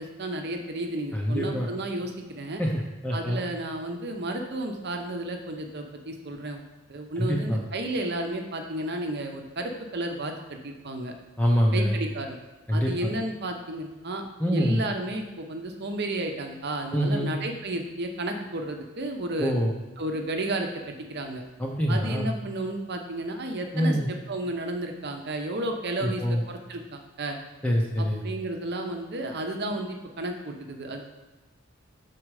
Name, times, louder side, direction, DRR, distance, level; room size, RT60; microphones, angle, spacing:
voice 1, 0.0-2.6 3.1-6.6 6.9-11.1 11.7-12.4 12.7-14.2 14.5-19.5 20.0-21.4 21.9-27.4 28.0-31.0, right 1 dB, 50° right, 4 dB, 0.8 m, -32 dB
voice 2, 1.1-1.7 2.6-2.7 3.0-3.4 7.2-7.6 11.4-12.0 12.7-12.9 14.4-14.8 16.9-17.3 19.4-19.7 21.6-22.3 23.7-24.1 26.0-26.4 27.6-28.2, equal, 5° left, -3 dB, 0.7 m, -25 dB
6.4 x 4.6 x 4.8 m, 1.2 s
head